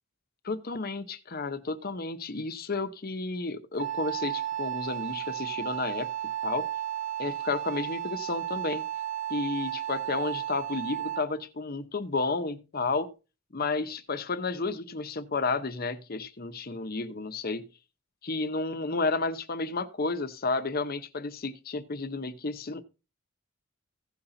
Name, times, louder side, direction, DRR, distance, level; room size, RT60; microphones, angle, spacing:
voice 1, 0.4-6.1 6.4-6.7 7.2-8.8 9.3-13.1 13.5-17.6 18.2-22.8, left 3 dB, 45° left, 0.8 m, -32 dB
Wind instrument woodwind instrument, 3.8-11.4, right 12 dB, 75° right, 0.8 m, -34 dB
15.5 x 5.7 x 3.9 m
head